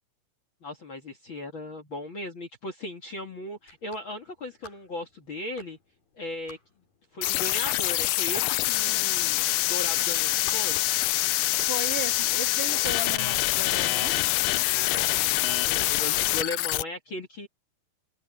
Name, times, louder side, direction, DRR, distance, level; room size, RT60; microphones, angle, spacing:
voice 1, 0.6-5.8 6.2-6.6 7.1-10.8 14.8-17.5, left 1 dB, 40° left, 2.4 m, -37 dB
sound 1, 3.5-15.6, left 5 dB, 60° left, 6.8 m, -51 dB
sound 2, 7.2-16.8, left 18 dB, 85° left, 1.9 m, -25 dB
voice 2, 11.7-14.2, right 3 dB, 20° right, 2.2 m, -36 dB
omnidirectional pair, 4.3 m